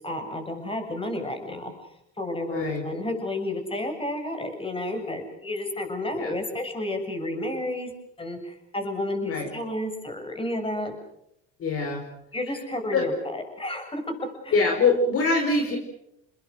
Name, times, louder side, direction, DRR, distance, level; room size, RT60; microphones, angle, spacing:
voice 1, 0.0-1.7 2.2-7.9 8.2-11.0 12.3-14.1 14.4-14.6, left 1 dB, 15° left, 6 dB, 7.4 m, -31 dB
voice 2, 2.5-2.8 6.1-6.3 9.3-9.5 11.6-12.0 12.9-13.1 14.5-15.8, left 3 dB, 45° left, 3 dB, 5.0 m, -23 dB
29.5 x 21.5 x 6.5 m, 0.77 s
hypercardioid pair, 80°, 32 cm